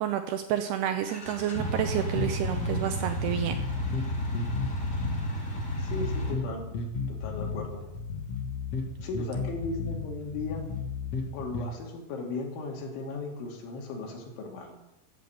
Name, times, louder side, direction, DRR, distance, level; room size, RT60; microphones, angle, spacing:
voice 1, 0.0-3.6, right 10 dB, 80° right, 8 dB, 2.5 m, -29 dB
sound 1, 1.0-6.3, equal, 25° left, 2.2 m, -32 dB
sound 2, 2.1-11.7, left 4 dB, 55° left, 1.8 m, -34 dB
voice 2, 5.8-6.7 7.1-7.8 9.0-10.7 11.3-14.8, left 3 dB, 85° left, 1 dB, 4.9 m, -36 dB
15.0 x 9.3 x 7.8 m, 0.95 s
omnidirectional pair, 5.3 m